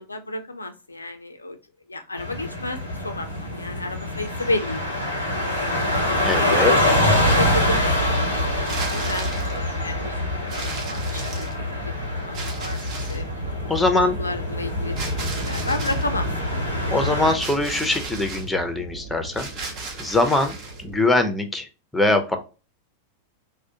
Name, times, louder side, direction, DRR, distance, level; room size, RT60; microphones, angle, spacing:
voice 1, 0.0-1.6 1.9-5.4 6.4-8.1 8.4-10.1 10.4-11.7 12.2-12.8 13.1-13.2 13.9-16.3, left 2 dB, 80° left, 7 dB, 0.3 m, -31 dB
sound 1, 2.2-17.3, left 1 dB, 90° right, 0.9 m, -25 dB
sound 2, 5.9-21.0, right 2 dB, 70° right, 1.3 m, -36 dB
voice 2, 6.2-6.7 13.7-14.2 16.9-19.7 20.0-20.6 20.8-21.7 21.9-22.4, left 2 dB, 5° left, 5 dB, 0.5 m, -22 dB
sound 3, 8.5-9.6 10.5-11.8 12.3-13.3 15.0-16.1 17.3-18.5 19.3-20.8, right 3 dB, 40° right, 0.7 m, -35 dB
2.4 x 2.1 x 2.7 m, 0.33 s
figure-of-eight pair, 90°, 0 cm